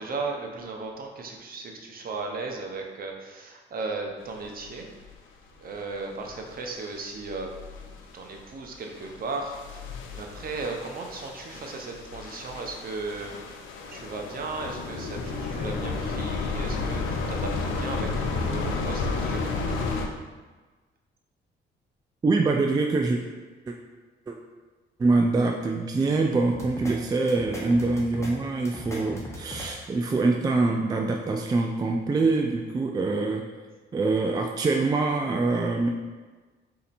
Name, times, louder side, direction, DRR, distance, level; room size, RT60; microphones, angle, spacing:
voice 1, 0.0-4.8 5.6-7.5 7.8-13.3 13.9-19.5, right 3 dB, 45° right, 2 dB, 0.7 m, -36 dB
sound 1, 4.6-5.1 6.3-6.8 7.0-8.4 8.7-20.1, left 3 dB, 90° left, 0.6 m, -32 dB
voice 2, 22.2-23.2 23.7-23.8 24.3-24.4 25.0-33.4 33.9-35.9, right 3 dB, 20° right, 2 dB, 0.3 m, -24 dB
sound 2, 26.5-26.9 27.3-28.3 28.7-29.7, equal, 15° left, 1.0 m, -38 dB
4.2 x 2.8 x 4.1 m, 1.3 s
cardioid pair, 90°, 20 cm